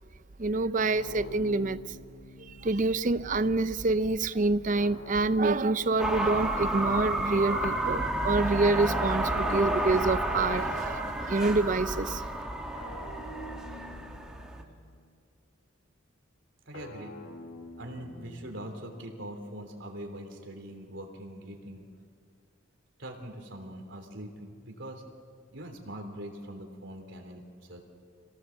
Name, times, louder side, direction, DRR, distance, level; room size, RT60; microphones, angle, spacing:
voice 1, 0.4-1.8 2.6-12.2, right 3 dB, 40° right, 0.6 m, -27 dB
sound 1, 0.8-3.2 4.7-7.1 8.7-10.9 12.7-15.1 16.7-19.1, left 1 dB, 85° left, 1.7 m, -47 dB
sound 2, 6.0-14.6, right 1 dB, 5° right, 1.8 m, -31 dB
voice 2, 16.7-17.1 17.8-21.8 23.0-25.0 25.5-27.8, right 1 dB, 65° right, 3.3 m, -42 dB
27.0 x 17.5 x 7.2 m
head